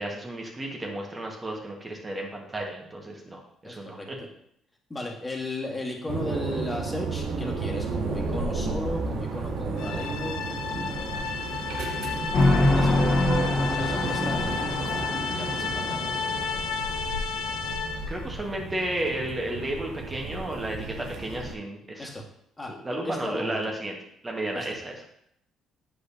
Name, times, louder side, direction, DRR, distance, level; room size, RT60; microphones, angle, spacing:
voice 1, 0.0-4.2 18.1-22.1 22.8-24.0 24.2-25.1, right 1 dB, 25° right, 0 dB, 1.6 m, -33 dB
voice 2, 3.6-4.1 4.9-11.4 12.7-15.0 15.3-16.1 22.0-22.2 22.6-22.7 23.0-23.7 24.5-24.7, left 1 dB, 20° left, -1 dB, 1.8 m, -36 dB
sound 1, 6.1-21.5, right 3 dB, 70° right, 0.8 m, -33 dB
sound 2, 9.8-18.2, left 6 dB, 75° left, 0.5 m, -32 dB
sound 3, 12.3-16.4, left 2 dB, 50° left, 1.3 m, -25 dB
8.2 x 5.0 x 2.8 m, 0.74 s
hypercardioid pair, 55°, 0 cm